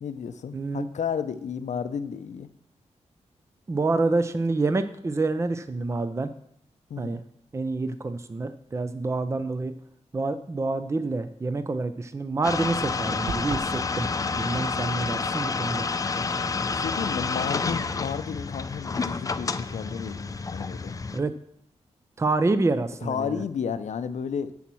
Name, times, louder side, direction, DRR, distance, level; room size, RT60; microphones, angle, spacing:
voice 1, 0.0-2.5 6.9-7.2 16.7-20.9 23.0-24.5, left 7 dB, 80° left, 12 dB, 0.6 m, -32 dB
voice 2, 0.5-0.9 3.7-6.3 7.0-7.2 7.5-9.7 10.1-14.1 14.3-15.9 21.1-21.3 22.2-23.4, right 3 dB, 25° right, 11 dB, 0.5 m, -27 dB
sound 1, 12.4-21.2, left 4 dB, 30° left, 0.4 m, -29 dB
sound 2, 13.3-13.8, right 4 dB, 70° right, 0.9 m, -33 dB
7.3 x 7.1 x 6.1 m, 0.71 s
wide cardioid pair, 115°, 12 cm